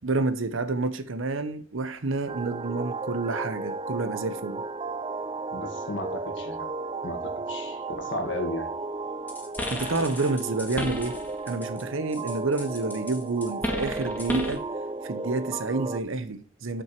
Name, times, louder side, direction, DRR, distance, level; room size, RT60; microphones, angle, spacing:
voice 1, 0.0-4.6 9.7-11.2 11.5-14.6 15.0-16.8, right 3 dB, 70° right, 0.8 m, -29 dB
sound 1, 2.3-16.0, right 3 dB, 25° right, 0.4 m, -34 dB
voice 2, 5.5-6.7 7.0-7.2 7.5-8.7, left 1 dB, 60° left, 2.1 m, -34 dB
sound 2, 9.3-11.8 12.1-14.7, left 1 dB, 10° left, 1.4 m, -34 dB
7.7 x 6.3 x 4.5 m
head